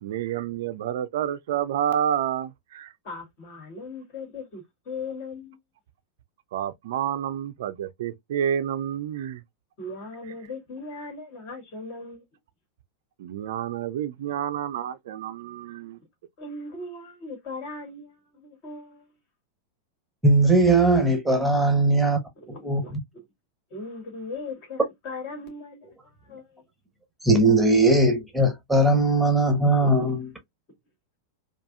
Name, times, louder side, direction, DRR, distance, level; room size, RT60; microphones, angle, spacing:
voice 1, 0.0-2.9 6.5-9.4 13.2-16.0, right 10 dB, 55° right, 0.4 m, -29 dB
voice 2, 3.0-5.6 9.8-12.3 16.0-16.1 16.4-19.1 21.8-21.9 22.5-22.9 23.7-25.9 26.2-26.6 29.8-30.1, left 3 dB, 45° left, 2.1 m, -38 dB
voice 3, 20.2-22.2 22.6-23.0 27.2-30.3, right 2 dB, 5° right, 1.1 m, -19 dB
4.6 x 2.4 x 2.3 m
figure-of-eight pair, 90°, 0 cm